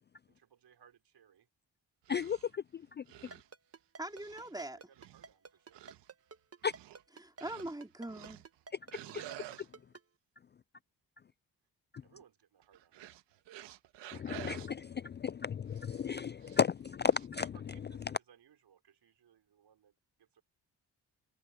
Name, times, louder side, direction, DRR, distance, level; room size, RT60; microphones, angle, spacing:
voice 1, 0.3-1.5 4.6-5.9 12.0-13.5 17.4-20.4, right 9 dB, 70° right, 5.8 m, -64 dB
sound 1, 2.0-2.5 3.1-3.5 4.0-4.5 5.0-5.3 5.7-6.1 6.6-7.0 7.4-7.8 8.1-8.6 8.9-9.7 12.6-14.7 15.8-16.0 16.4-16.7 17.0-17.3, right 14 dB, 85° right, 1.6 m, -50 dB
voice 2, 2.1-3.0 6.6-6.7 9.1-9.2 14.2-17.4, left 7 dB, 25° left, 0.3 m, -33 dB
Ringtone, 3.3-10.0, right 5 dB, 35° right, 1.3 m, -51 dB
voice 3, 4.0-4.8 7.2-8.4, right 1 dB, 10° right, 3.8 m, -42 dB
supercardioid pair, 55°, 42 cm